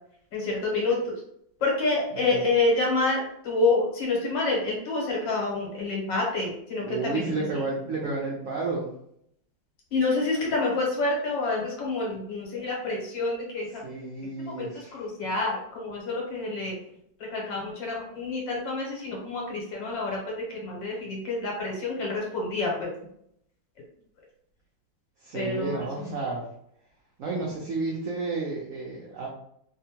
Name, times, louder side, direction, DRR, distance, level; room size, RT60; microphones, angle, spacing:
voice 1, 0.3-1.2 1.6-7.3 9.9-13.8 14.5-16.7 17.3-20.2 20.5-22.9 25.3-25.9, left 3 dB, 75° left, -2 dB, 1.7 m, -28 dB
voice 2, 2.1-2.5 6.8-8.9 13.8-15.0 25.2-26.4 27.2-29.3, right 3 dB, 85° right, -2 dB, 0.7 m, -31 dB
3.4 x 2.1 x 2.8 m, 0.72 s
omnidirectional pair, 2.0 m